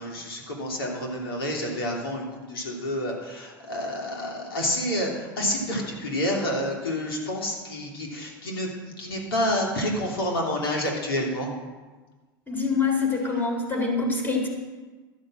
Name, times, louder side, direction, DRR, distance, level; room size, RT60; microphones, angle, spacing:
voice 1, 0.0-11.5, left 1 dB, 90° left, -1 dB, 2.7 m, -29 dB
voice 2, 12.5-14.5, left 4 dB, 15° left, 1 dB, 3.7 m, -25 dB
13.0 x 6.1 x 7.5 m, 1.3 s
hypercardioid pair, 95°, 12 cm